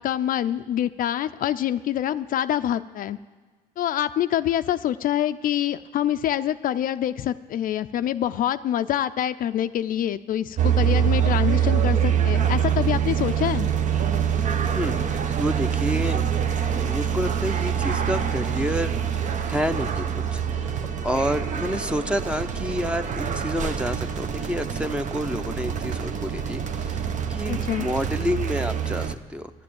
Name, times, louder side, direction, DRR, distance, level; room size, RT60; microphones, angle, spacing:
voice 1, 0.0-3.2 3.8-13.7 27.5-27.9, left 11 dB, 55° left, 11 dB, 0.5 m, -26 dB
sound 1, 10.6-29.1, right 8 dB, 45° right, 0.9 m, -25 dB
voice 2, 14.7-15.1 15.3-16.3 16.7-18.9 19.5-20.7 21.0-27.0 27.3-29.5, equal, 5° right, 9 dB, 0.8 m, -29 dB
13.0 x 11.5 x 8.6 m, 1.4 s
cardioid pair, 110°, 17 cm